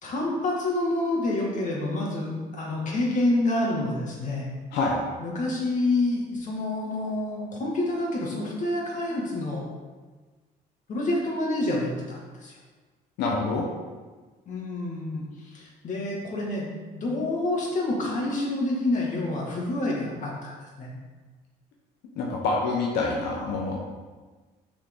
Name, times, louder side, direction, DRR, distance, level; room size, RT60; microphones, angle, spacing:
voice 1, 0.0-4.5 5.2-9.6 10.9-12.5 14.5-16.7 16.9-20.5 20.8-20.9, left 2 dB, 50° left, -3 dB, 2.2 m, -28 dB
voice 2, 13.2-13.7 22.2-24.0, left 3 dB, 85° left, -2 dB, 1.1 m, -26 dB
6.6 x 6.2 x 3.8 m, 1.4 s
cardioid pair, 110°, 17 cm